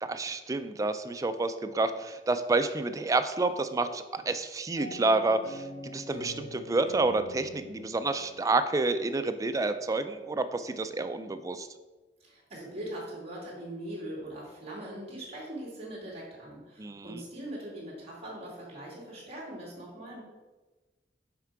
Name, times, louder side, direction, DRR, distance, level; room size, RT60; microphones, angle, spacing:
voice 1, 0.0-11.7 16.8-17.2, right 3 dB, 20° right, 9 dB, 0.3 m, -29 dB
sound 1, 4.8-9.4, left 2 dB, 90° left, 0.7 m, -46 dB
voice 2, 12.2-20.2, right 1 dB, 35° right, -5 dB, 2.3 m, -41 dB
5.8 x 4.6 x 4.6 m, 1.2 s
head